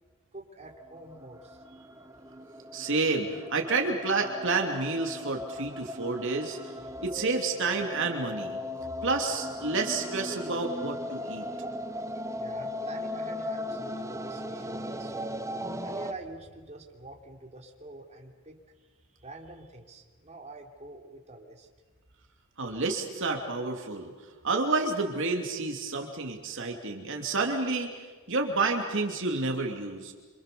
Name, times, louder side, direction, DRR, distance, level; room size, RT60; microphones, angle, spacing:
voice 1, 0.3-1.6 12.4-15.4 15.8-18.6 19.1-21.7, right 2 dB, 30° right, 1 dB, 3.3 m, -46 dB
sound 1, 0.6-16.1, left 1 dB, 15° right, 1.1 m, -38 dB
voice 2, 2.7-6.6 7.0-8.6 9.0-11.5 22.6-24.1 24.4-27.9 28.3-30.1, right 3 dB, 60° right, 3 dB, 2.9 m, -29 dB
27.5 x 27.0 x 7.0 m, 1.4 s
head